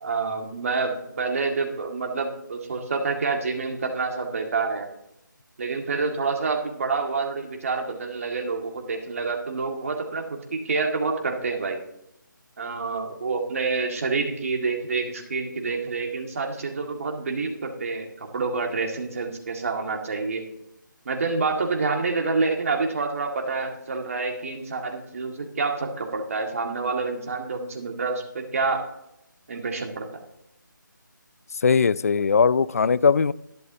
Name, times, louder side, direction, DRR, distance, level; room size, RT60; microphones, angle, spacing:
voice 1, 0.0-4.9 5.6-10.2 10.5-11.8 12.6-20.4 21.1-28.8 29.5-30.2, right 4 dB, 45° right, 2 dB, 2.0 m, -27 dB
voice 2, 31.6-33.3, left 5 dB, 45° left, 19 dB, 0.4 m, -19 dB
11.5 x 11.5 x 2.8 m, 0.80 s
figure-of-eight pair, 155°, 11 cm